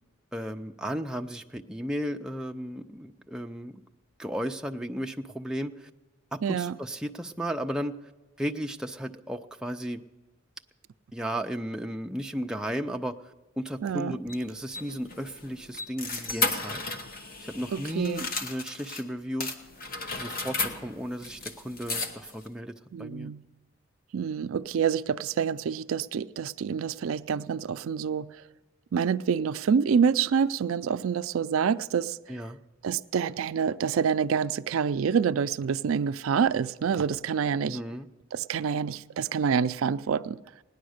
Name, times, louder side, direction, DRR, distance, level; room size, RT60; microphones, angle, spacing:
voice 1, 0.3-3.8 4.2-5.9 6.3-8.0 8.4-10.0 11.1-13.1 13.6-16.8 17.4-19.5 20.1-22.7 23.0-23.3 32.3-32.6 37.7-38.1, equal, 5° right, 0.4 m, -34 dB
voice 2, 6.4-6.8 13.8-14.2 17.7-18.3 22.9-23.4 24.1-28.4 28.9-32.2 32.8-37.8 38.3-40.4, right 7 dB, 80° right, 0.4 m, -27 dB
sound 1, 14.3-19.0 19.4-22.5, left 3 dB, 45° left, 1.1 m, -34 dB
17.5 x 10.0 x 6.4 m
head